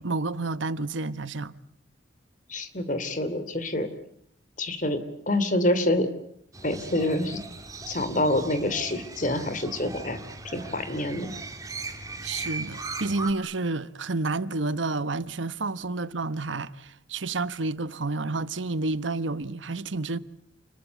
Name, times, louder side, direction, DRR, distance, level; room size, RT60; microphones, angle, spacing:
voice 1, 0.0-1.5 12.2-20.2, right 3 dB, 80° right, 1.1 m, -30 dB
voice 2, 2.5-3.9 4.6-5.0 5.3-6.1 6.6-7.4 7.9-10.2 10.5-11.3, left 1 dB, 40° left, 3.0 m, -26 dB
Crow, 6.5-13.3, right 3 dB, 20° right, 2.3 m, -38 dB
29.5 x 22.0 x 8.3 m
head